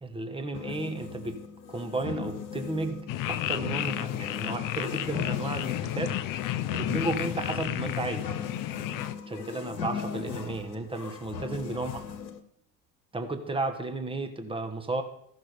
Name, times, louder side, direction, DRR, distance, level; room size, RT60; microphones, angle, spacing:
voice 1, 0.0-1.4 1.7-6.2 6.7-8.3 9.3-12.0 13.1-15.0, right 2 dB, 10° right, 7 dB, 1.4 m, -33 dB
sound 1, 0.5-12.4, left 6 dB, 90° left, 1.0 m, -38 dB
sound 2, 3.1-9.2, left 13 dB, 40° left, 0.7 m, -32 dB
15.0 x 6.2 x 5.2 m, 0.70 s
hypercardioid pair, 70°, 49 cm